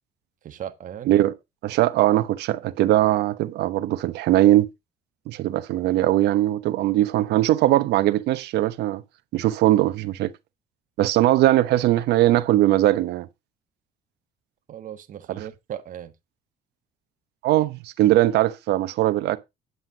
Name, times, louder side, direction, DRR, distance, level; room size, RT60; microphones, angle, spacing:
voice 1, 0.4-1.2 14.7-16.1, right 10 dB, 50° right, 1.4 m, -37 dB
voice 2, 1.6-4.7 5.3-9.0 9.3-10.3 11.0-13.3 17.4-19.4, right 15 dB, 80° right, 1.0 m, -20 dB
9.6 x 8.0 x 4.0 m
cardioid pair, 110°, 17 cm